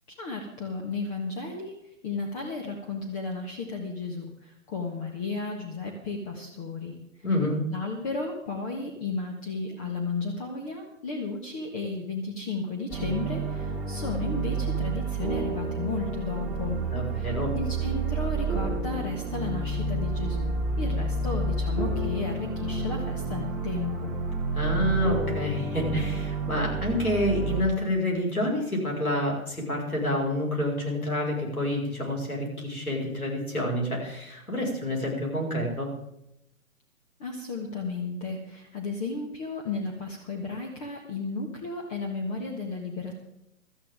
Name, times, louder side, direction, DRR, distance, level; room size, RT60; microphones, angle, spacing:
voice 1, 0.2-1.7 2.0-7.0 7.7-16.8 17.2-24.1 37.2-43.2, left 3 dB, 25° left, 1 dB, 1.6 m, -34 dB
voice 2, 7.2-7.6 16.9-17.5 24.5-35.9, left 1 dB, 85° left, -1 dB, 5.5 m, -28 dB
sound 1, 12.9-27.6, right 3 dB, ahead, 2.8 m, -30 dB
17.5 x 13.0 x 3.7 m, 0.83 s
figure-of-eight pair, 130°, 43 cm